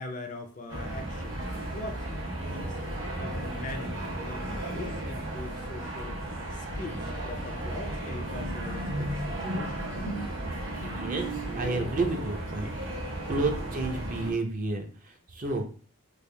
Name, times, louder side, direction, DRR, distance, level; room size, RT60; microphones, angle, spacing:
voice 1, 0.0-1.4 1.7-6.2 6.5-9.9 12.9-13.0, left 2 dB, 35° left, 5 dB, 0.5 m, -42 dB
sound 1, 0.7-14.3, right 1 dB, 70° right, 1.4 m, -35 dB
sound 2, 7.8-12.8, right 1 dB, 90° right, 1.2 m, -39 dB
voice 2, 10.8-12.7 13.3-15.6, right 3 dB, 40° right, 3 dB, 0.5 m, -31 dB
3.4 x 2.3 x 3.3 m, 0.40 s
head